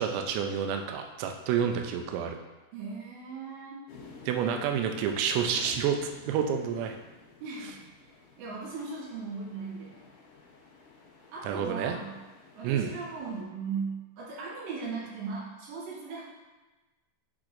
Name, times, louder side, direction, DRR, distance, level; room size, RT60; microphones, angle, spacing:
voice 1, 0.0-2.4 4.3-6.0 6.3-7.0 11.4-12.0 12.6-12.9, right 8 dB, 85° right, 4 dB, 2.5 m, -29 dB
voice 2, 2.7-3.8 7.4-8.1 8.4-10.1 11.3-12.2 12.6-16.2, right 5 dB, 70° right, -5 dB, 3.5 m, -38 dB
sound 1, 3.9-13.4, left 4 dB, 80° left, 1.9 m, -53 dB
8.4 x 6.2 x 2.6 m, 1.2 s
omnidirectional pair, 5.8 m